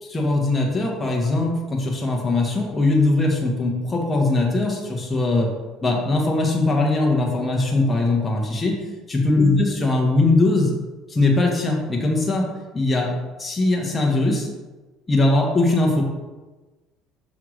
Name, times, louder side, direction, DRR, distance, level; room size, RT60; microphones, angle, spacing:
voice 1, 0.0-5.5 5.8-8.8 9.1-10.7 11.1-12.5 12.7-13.1 13.4-14.5 15.1-16.0, left 2 dB, 20° left, -1 dB, 1.2 m, -20 dB
6.3 x 5.6 x 3.2 m, 1.2 s
cardioid pair, 110°, 0 cm